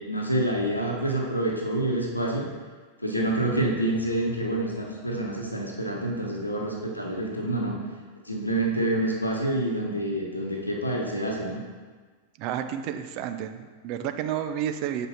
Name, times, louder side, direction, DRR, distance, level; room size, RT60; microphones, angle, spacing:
voice 1, 0.1-2.5 3.0-7.8 8.2-11.6, right 1 dB, 85° left, -1 dB, 1.2 m, -27 dB
voice 2, 12.4-15.1, right 10 dB, 45° right, 8 dB, 0.5 m, -31 dB
7.2 x 5.4 x 4.2 m, 1.4 s
figure-of-eight pair, 90°, 0 cm